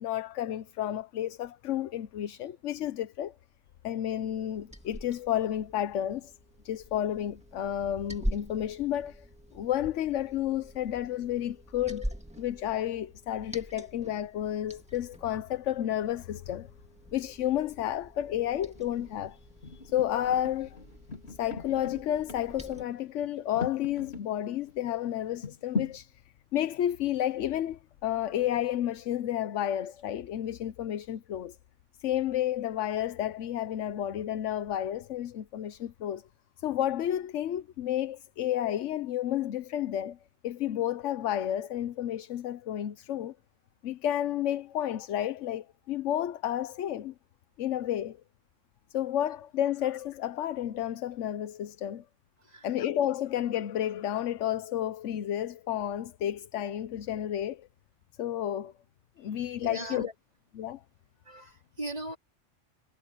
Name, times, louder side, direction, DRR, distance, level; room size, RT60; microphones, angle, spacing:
voice 1, 0.0-3.3 3.8-6.3 6.6-9.3 9.5-16.7 17.1-20.8 21.3-26.1 26.5-31.6 32.0-36.2 36.6-40.2 40.4-43.3 43.8-47.1 47.6-48.2 48.9-52.0 52.6-57.7 58.2-58.7 59.2-60.1 60.5-60.8, left 11 dB, 75° left, 1.0 m, -31 dB
Liquid, 4.2-22.8, equal, 5° right, 2.0 m, -44 dB
sound 1, 18.7-19.1 19.6-24.2 24.7-24.8 25.4-26.0, left 4 dB, 55° left, 3.9 m, -39 dB
voice 2, 59.6-60.1 61.2-62.2, right 2 dB, 30° right, 3.4 m, -39 dB
omnidirectional pair, 1.3 m